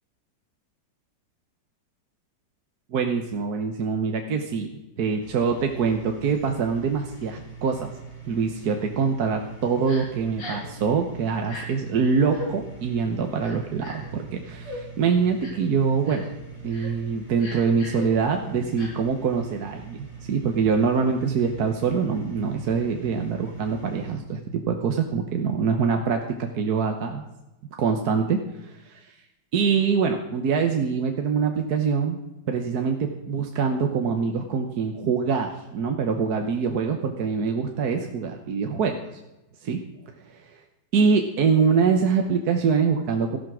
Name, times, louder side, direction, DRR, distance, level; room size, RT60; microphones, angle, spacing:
voice 1, 2.9-4.7 5.0-7.9 8.3-16.3 16.6-27.2 27.8-29.1 29.5-32.2 32.5-39.0 39.6-39.8 40.3-40.4 40.9-43.4, right 5 dB, 65° right, 4 dB, 1.5 m, -24 dB
sound 1, 5.2-24.2, right 5 dB, 25° left, 2.9 m, -43 dB
Crying sobbing, 9.9-10.0 10.4-10.7 11.4-11.6 12.3-12.5 13.4-14.1 14.6-14.8 15.4-15.7 16.0-16.3 16.7-16.9 17.4-18.0 18.8-18.9, left 1 dB, 75° left, 4.3 m, -38 dB
14.5 x 11.0 x 6.2 m, 0.96 s
omnidirectional pair, 1.9 m